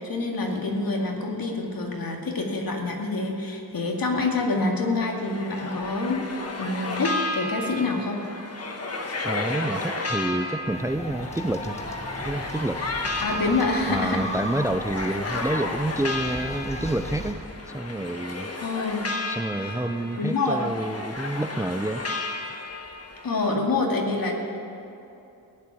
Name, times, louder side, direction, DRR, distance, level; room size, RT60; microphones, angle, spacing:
voice 1, 0.0-8.2 13.2-14.4 18.6-19.0 19.6-19.7 20.2-20.6 23.2-24.4, left 3 dB, 65° left, 1 dB, 2.2 m, -26 dB
sound 1, 4.9-23.6, left 2 dB, 40° left, 1.5 m, -33 dB
voice 2, 9.2-11.8 12.2-12.8 13.9-17.4 17.7-18.5 19.3-22.0, right 1 dB, 10° right, 9 dB, 0.4 m, -28 dB
sound 2, 10.7-17.3, left 1 dB, 15° left, 1.6 m, -36 dB
17.0 x 7.6 x 9.8 m, 2.8 s
wide cardioid pair, 135°, 38 cm